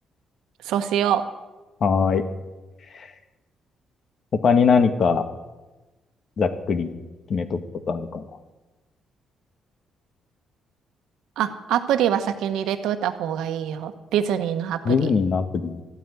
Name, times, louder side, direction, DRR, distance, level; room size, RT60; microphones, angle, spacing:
voice 1, 0.6-1.2 11.4-15.1, right 9 dB, 85° right, 9 dB, 1.2 m, -24 dB
voice 2, 1.8-2.2 2.9-3.1 4.4-5.2 6.4-6.9 7.3-7.6 7.9-8.2 14.9-15.8, left 5 dB, 55° left, 9 dB, 1.6 m, -21 dB
14.0 x 9.2 x 9.6 m, 1.1 s
cardioid pair, 90°, 0 cm